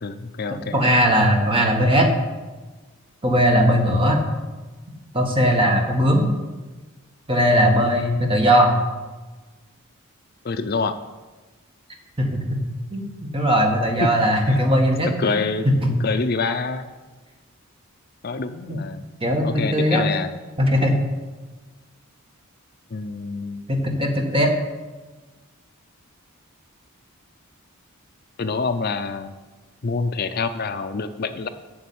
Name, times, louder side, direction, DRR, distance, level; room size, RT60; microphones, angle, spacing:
voice 1, 0.0-0.8 10.4-11.0 14.0-14.1 14.5-14.6 15.2-15.7 16.0-16.9 18.2-19.0 19.4-20.3 22.9-23.6 28.4-29.3 29.8-31.5, left 4 dB, 45° left, 9 dB, 0.5 m, -26 dB
voice 2, 0.7-2.1 3.2-4.2 5.1-6.2 7.3-8.7 12.2-12.6 12.9-15.4 15.8-15.9 18.7-18.8 19.2-20.0 20.6-20.9 23.7-24.5, equal, 25° right, 1 dB, 1.7 m, -19 dB
8.7 x 7.2 x 8.5 m, 1.2 s
head